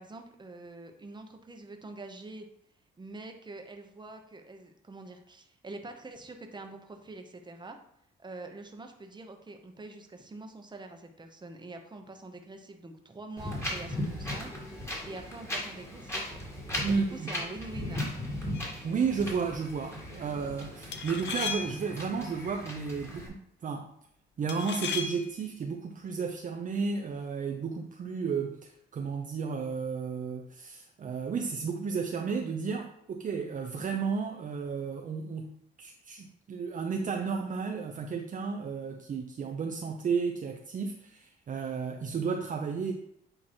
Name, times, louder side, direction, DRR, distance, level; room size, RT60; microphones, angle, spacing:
voice 1, 0.0-2.5 3.0-7.8 8.2-14.5 15.0-16.4 16.9-18.0, right 2 dB, 20° right, 5 dB, 1.0 m, -45 dB
Wind, 13.4-23.3, left 1 dB, 15° left, 2.1 m, -37 dB
voice 2, 16.8-17.3 18.8-23.9 24.4-35.5 35.8-42.9, right 5 dB, 40° right, 2 dB, 0.6 m, -33 dB
sound 1, 18.5-18.8 20.9-22.0 24.5-25.4, left 6 dB, 65° left, 0.7 m, -36 dB
8.6 x 3.0 x 4.4 m, 0.72 s
cardioid pair, 90°, 20 cm